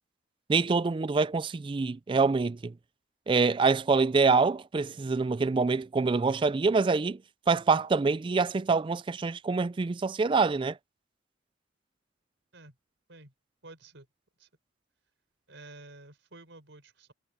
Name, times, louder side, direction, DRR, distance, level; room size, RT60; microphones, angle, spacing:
voice 1, 0.5-2.7 3.3-7.2 7.5-10.8, right 4 dB, 25° right, 0.3 m, -25 dB
voice 2, 13.6-14.1 14.4-14.5 15.5-17.1, right 2 dB, 70° right, 4.6 m, -50 dB
head